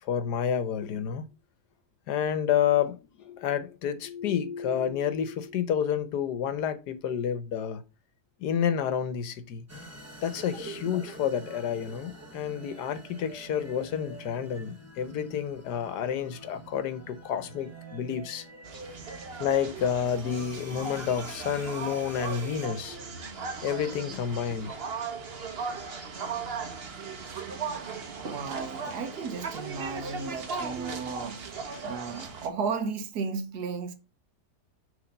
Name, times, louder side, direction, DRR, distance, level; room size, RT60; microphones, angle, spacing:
voice 1, 0.0-1.2 2.1-7.8 8.4-9.6 10.2-18.5 19.4-23.0 23.6-24.8 28.2-28.3 31.7-31.8, left 8 dB, 80° left, 1.4 m, -29 dB
sound 1, 9.7-22.7, right 2 dB, 10° right, 0.9 m, -46 dB
sound 2, 18.6-32.5, right 5 dB, 45° right, 1.0 m, -37 dB
voice 2, 28.3-31.4 31.8-34.0, right 5 dB, 75° right, 1.4 m, -34 dB
6.2 x 3.3 x 5.2 m
omnidirectional pair, 1.7 m